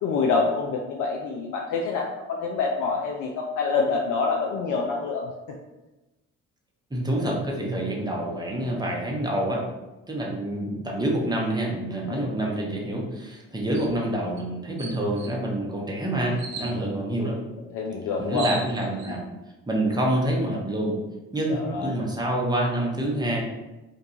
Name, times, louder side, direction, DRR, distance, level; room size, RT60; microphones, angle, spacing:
voice 1, 0.0-5.3 12.1-12.3 16.7-16.8 17.7-18.5 21.5-21.9, left 4 dB, 50° left, 0 dB, 0.5 m, -26 dB
voice 2, 6.9-9.6 10.1-17.4 18.2-19.2 19.7-21.0 21.3-23.4, right 1 dB, 10° right, -2 dB, 0.8 m, -27 dB
sound 1, 13.7-13.9 14.4-14.5 14.8-15.3 16.4-16.7 17.9-18.0 18.1-19.1, right 4 dB, 85° right, 0.6 m, -36 dB
2.5 x 2.2 x 2.8 m, 1.1 s
hypercardioid pair, 45°, 40 cm